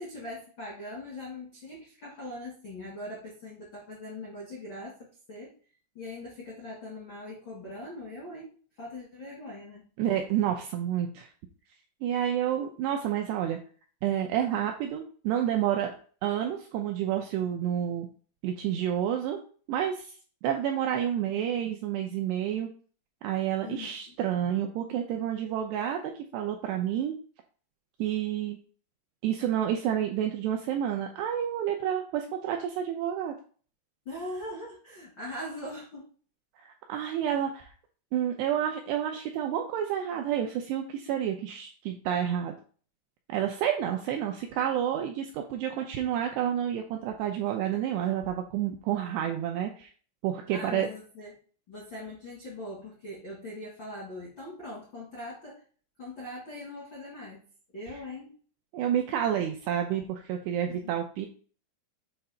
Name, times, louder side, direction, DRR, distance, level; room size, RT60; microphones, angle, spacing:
voice 1, 0.0-5.5 5.9-8.5 8.8-9.9 23.6-24.1 34.0-36.1 50.5-51.4 51.7-55.6 56.0-57.4 57.7-58.4 60.7-61.0, left 1 dB, 70° left, -5 dB, 1.1 m, -41 dB
voice 2, 10.0-11.3 12.0-13.6 14.0-15.9 16.2-18.1 18.4-19.4 19.7-20.1 20.4-22.7 23.2-27.1 28.0-28.6 29.2-33.3 36.6-37.7 38.1-42.5 43.3-49.9 50.2-50.9 58.7-61.3, right 10 dB, 85° right, 3 dB, 2.4 m, -29 dB
7.9 x 2.8 x 5.5 m, 0.42 s
omnidirectional pair, 5.5 m